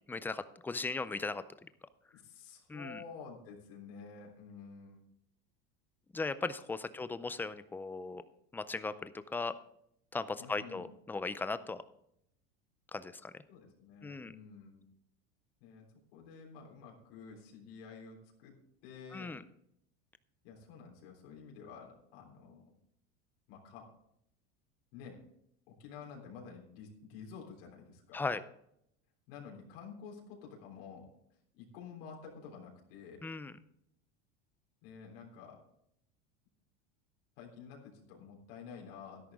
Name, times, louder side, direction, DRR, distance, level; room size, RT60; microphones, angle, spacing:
voice 1, 0.1-1.7 2.7-3.0 6.1-8.2 8.5-9.5 10.1-11.8 12.9-13.3 14.0-14.3 19.1-19.4 28.1-28.4 33.2-33.5, left 3 dB, 5° left, 14 dB, 0.4 m, -38 dB
voice 2, 2.1-5.0 7.0-7.1 10.4-10.9 13.5-14.8 15.6-15.8 16.1-18.5 18.8-19.3 20.4-22.7 23.5-23.9 24.9-25.2 25.7-28.2 29.3-31.1 31.5-33.2 34.8-35.6 37.4-39.3, left 6 dB, 75° left, -1 dB, 3.5 m, -50 dB
12.5 x 11.0 x 3.6 m, 0.74 s
supercardioid pair, 140°, 29 cm